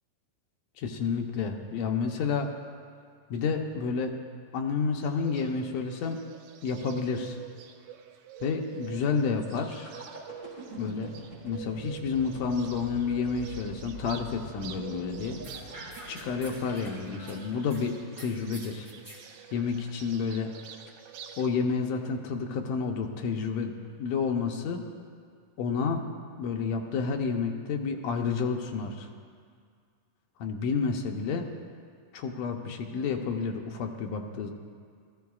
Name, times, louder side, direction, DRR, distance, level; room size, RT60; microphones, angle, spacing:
voice 1, 0.8-2.5 3.3-4.1 4.5-6.2 6.6-7.4 8.4-9.9 10.8-11.1 11.4-15.4 16.0-18.9 19.5-20.5 21.4-24.9 25.6-26.0 26.4-29.1 30.4-31.5 32.1-34.5, left 5 dB, 85° left, 2 dB, 1.5 m, -30 dB
Bird, 5.0-21.5, right 9 dB, 90° right, 2.5 m, -47 dB
sound 1, 9.4-19.2 19.7-19.9, left 1 dB, 25° left, 3.2 m, -46 dB
sound 2, 15.4-17.8 18.2-19.2, right 1 dB, 15° right, 2.5 m, -47 dB
18.5 x 13.5 x 2.4 m, 2.1 s
omnidirectional pair, 4.0 m